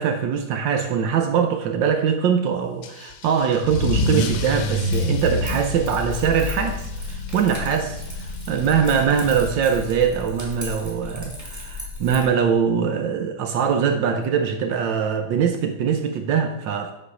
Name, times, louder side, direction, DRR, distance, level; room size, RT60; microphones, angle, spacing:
voice 1, 0.0-6.8 7.1-8.0 8.5-16.9, right 7 dB, 75° right, 6 dB, 1.3 m, -22 dB
Car / Engine starting / Accelerating revving vroom, 2.8-10.0, left 2 dB, 90° left, 1.5 m, -28 dB
Keys jangling, 4.3-12.3, left 3 dB, 10° right, 1.3 m, -36 dB
6.7 x 4.8 x 4.8 m, 0.85 s
omnidirectional pair, 2.1 m